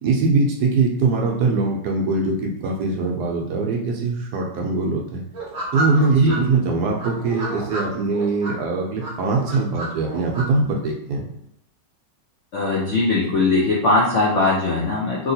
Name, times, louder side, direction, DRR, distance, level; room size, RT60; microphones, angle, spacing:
voice 1, 0.0-5.2 5.7-11.3, right 3 dB, 70° right, 0 dB, 1.0 m, -22 dB
sound 1, 5.3-6.4 7.0-8.5 9.0-10.4, right 2 dB, 45° right, 0.8 m, -30 dB
voice 2, 12.5-15.3, left 3 dB, 70° left, -5 dB, 0.7 m, -20 dB
2.9 x 2.8 x 2.7 m, 0.76 s
omnidirectional pair, 1.9 m